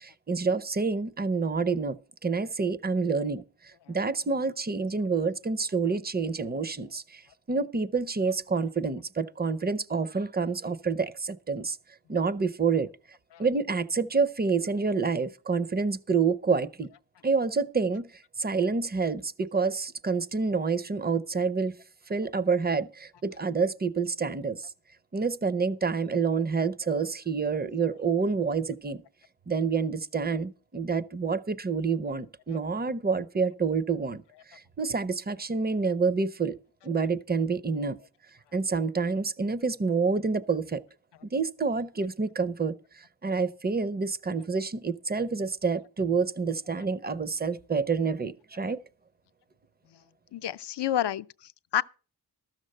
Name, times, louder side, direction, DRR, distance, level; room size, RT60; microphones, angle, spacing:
voice 1, 0.0-2.0 2.2-3.4 3.9-7.2 7.5-11.8 12.1-12.9 13.4-16.9 17.2-18.0 18.4-21.7 22.1-24.6 25.1-29.0 29.5-34.2 34.5-36.6 36.8-38.0 38.5-40.8 41.3-42.8 43.2-48.8, right 5 dB, 25° right, 0.5 m, -28 dB
voice 2, 50.3-51.8, left 11 dB, 80° left, 0.5 m, -30 dB
13.0 x 6.6 x 6.5 m
wide cardioid pair, 145°, 40 cm